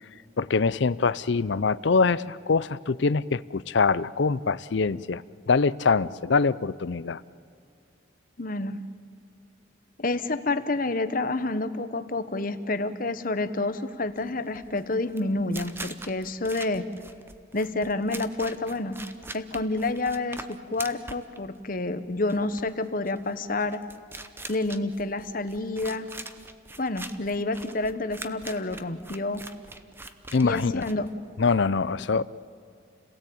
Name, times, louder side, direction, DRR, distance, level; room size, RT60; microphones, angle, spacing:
voice 1, 0.4-7.2 30.3-30.8 31.4-32.2, left 4 dB, 60° left, 18 dB, 0.5 m, -24 dB
voice 2, 8.4-8.8 10.0-16.8 17.5-19.0 19.3-23.8 24.5-26.1 26.8-29.4 30.4-31.1, left 2 dB, 45° left, 11 dB, 1.0 m, -29 dB
sound 1, 14.1-31.5, right 2 dB, 10° right, 0.8 m, -43 dB
29.5 x 17.5 x 8.6 m, 2.5 s
head